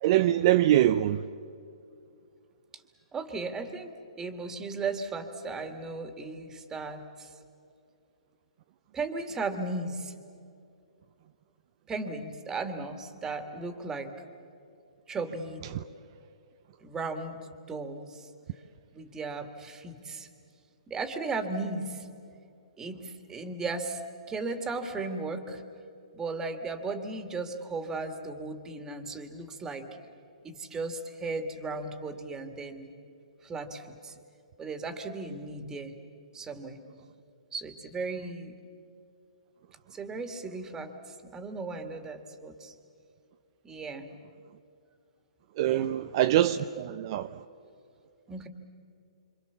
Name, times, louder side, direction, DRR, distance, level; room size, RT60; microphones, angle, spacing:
voice 1, 0.0-1.2 15.7-15.8 45.6-47.3, right 13 dB, 45° right, 0.6 m, -24 dB
voice 2, 3.1-7.3 8.9-10.1 11.9-14.1 15.1-15.7 16.8-18.3 18.9-20.3 20.9-22.1 22.8-24.0 24.3-25.6 26.1-30.0 30.4-32.9 33.4-34.2 34.6-35.9 36.3-36.8 37.5-38.6 39.9-42.7 43.6-44.1 45.6-45.9 46.6-47.0 48.3-48.5, right 3 dB, 15° right, 2.0 m, -36 dB
26.5 x 26.5 x 7.1 m
hypercardioid pair, 135°, 4 cm